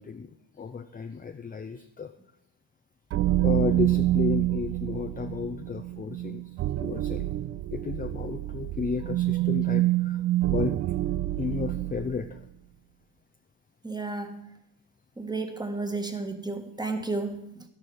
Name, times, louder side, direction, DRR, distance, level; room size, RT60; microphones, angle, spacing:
voice 1, 0.0-2.1 3.4-6.4 6.7-7.3 7.7-10.7 11.4-12.4, left 5 dB, 20° left, 7 dB, 0.6 m, -33 dB
sound 1, 3.1-12.3, right 15 dB, 35° right, 0.4 m, -27 dB
voice 2, 13.8-14.5 15.2-17.6, right 3 dB, 10° right, 6 dB, 1.5 m, -32 dB
12.0 x 11.5 x 4.7 m, 0.80 s
supercardioid pair, 100°, 49 cm